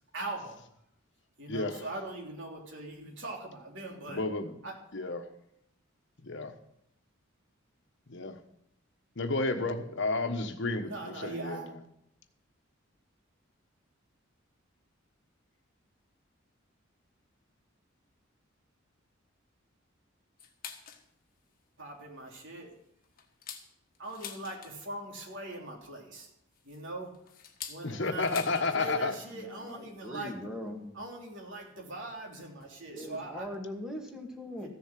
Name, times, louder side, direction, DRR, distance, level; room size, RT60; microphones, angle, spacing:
voice 1, 0.1-0.6 1.4-4.2 4.6-4.7 10.8-11.7 21.8-22.7 24.0-26.3 26.6-27.1 27.7-30.4 30.9-33.5 34.6-34.7, right 2 dB, 65° right, 3.3 m, -41 dB
voice 2, 1.5-1.8 4.1-4.6 4.9-5.3 6.2-6.5 8.1-8.4 9.2-11.8 27.8-29.1, left 3 dB, 60° left, 1.3 m, -31 dB
sound 1, 20.4-21.1 21.5-21.6 22.0-22.2 22.7-25.0 26.2-28.8 29.0-29.1 29.4-29.7 30.7-30.8 31.7-31.8 32.6-32.8 33.1-33.2 33.4-33.6, left 8 dB, 45° left, 1.5 m, -46 dB
voice 3, 29.3-31.0 32.9-34.7, left 1 dB, 5° right, 2.2 m, -41 dB
14.5 x 7.2 x 7.5 m
head